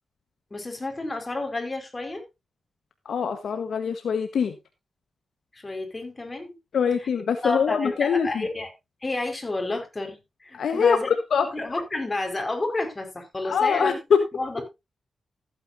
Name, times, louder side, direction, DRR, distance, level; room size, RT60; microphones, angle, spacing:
voice 1, 0.5-2.2 5.5-6.6 7.4-8.7 9.0-11.1 11.5-14.0 14.3-14.7, left 2 dB, 30° left, 4.7 m, -30 dB
voice 2, 3.0-4.6 6.7-8.5 10.5-11.5 13.4-14.2, left 6 dB, 75° left, 1.2 m, -23 dB
15.0 x 8.9 x 2.6 m
cardioid pair, 50°, 0 cm